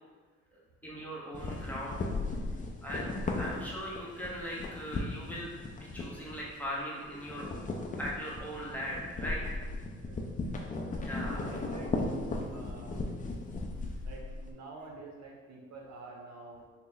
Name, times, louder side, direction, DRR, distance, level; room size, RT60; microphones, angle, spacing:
voice 1, 0.8-2.0 2.8-3.1 3.4-7.5 8.0-9.6 11.0-11.4, equal, 5° left, -5 dB, 0.9 m, -39 dB
sound 1, 1.3-6.8 7.1-14.5, left 2 dB, 25° left, 0.5 m, -37 dB
voice 2, 10.0-10.6 11.3-12.0 12.5-12.9 14.0-16.7, right 3 dB, 60° right, 0 dB, 0.7 m, -48 dB
3.9 x 2.1 x 3.9 m, 1.4 s
cardioid pair, 90°, 30 cm